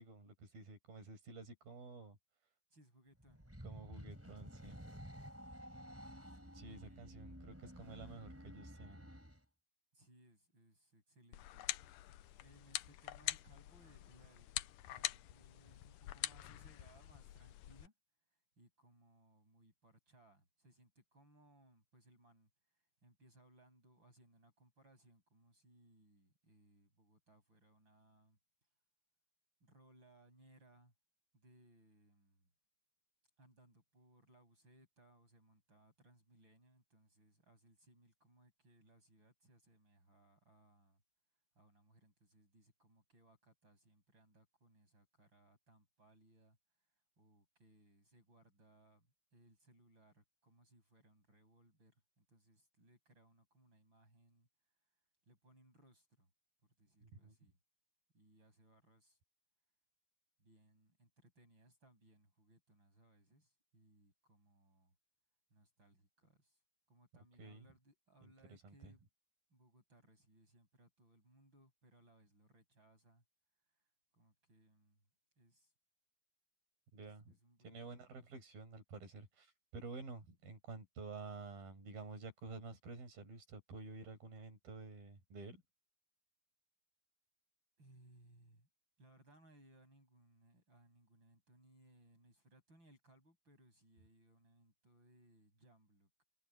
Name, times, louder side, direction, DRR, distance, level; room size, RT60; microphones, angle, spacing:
voice 1, 0.0-2.2 3.6-4.8 6.5-9.1 57.0-57.3 67.4-67.6 68.2-68.3 68.6-68.9 76.9-77.4 77.6-85.6, right 3 dB, 80° right, 7.7 m, -51 dB
voice 2, 2.7-3.5 3.8-4.1 6.7-7.0 9.9-11.7 12.4-14.5 14.8-17.9 18.3-28.4 29.6-30.9 31.3-32.5 33.4-41.0 41.5-49.1 49.3-54.5 55.3-56.3 56.6-57.6 58.1-59.2 60.4-64.9 65.5-66.6 66.9-69.1 69.5-73.2 73.6-75.1 75.4-75.7 76.9-78.2 87.8-88.7 89.0-96.2, right 1 dB, 30° right, 8.4 m, -67 dB
sound 1, 3.2-9.4, equal, 5° right, 5.7 m, -52 dB
sound 2, 11.3-17.9, left 15 dB, 75° left, 2.3 m, -45 dB
omnidirectional pair, 4.1 m